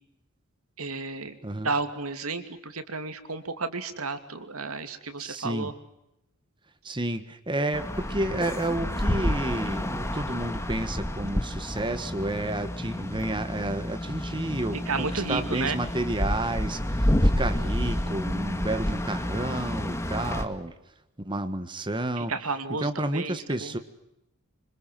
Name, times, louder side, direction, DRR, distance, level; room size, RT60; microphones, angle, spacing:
voice 1, 0.8-1.4 1.6-5.7 14.9-15.8 22.2-23.7, right 4 dB, 85° right, 9 dB, 2.7 m, -32 dB
voice 2, 5.2-5.7 6.8-20.7 21.2-22.3 22.8-23.8, right 1 dB, 20° right, 9 dB, 1.5 m, -31 dB
sound 1, 7.7-20.5, left 1 dB, 15° left, 2.0 m, -29 dB
27.0 x 25.5 x 7.7 m, 0.85 s
head